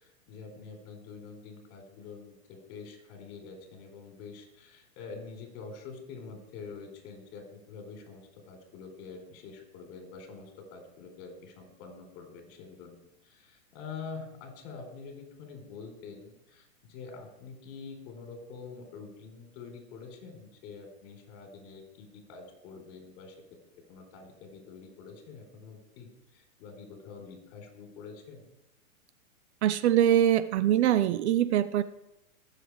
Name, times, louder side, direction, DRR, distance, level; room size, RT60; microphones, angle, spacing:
voice 1, 0.0-13.0 13.2-23.3 23.9-28.4, left 5 dB, 40° left, 4 dB, 4.3 m, -46 dB
voice 2, 29.6-31.8, right 11 dB, 50° right, 14 dB, 0.7 m, -23 dB
21.0 x 7.8 x 4.8 m, 0.85 s
hypercardioid pair, 140°, 42 cm